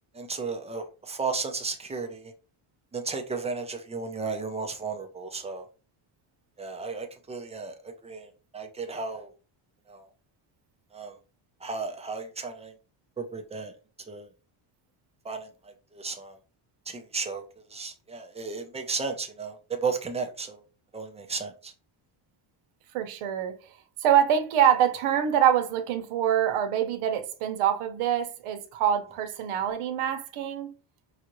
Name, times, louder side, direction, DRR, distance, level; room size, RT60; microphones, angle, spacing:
voice 1, 0.1-2.3 2.9-5.7 6.6-9.3 9.9-10.1 10.9-11.1 11.6-12.7 13.2-13.7 14.1-14.3 15.2-16.4 16.9-17.4 17.7-20.6 20.9-21.7, right 4 dB, 15° right, 0.3 m, -34 dB
voice 2, 22.9-23.6 24.0-30.7, right 9 dB, 80° right, 0.9 m, -25 dB
5.5 x 2.5 x 3.0 m
cardioid pair, 170°, 49 cm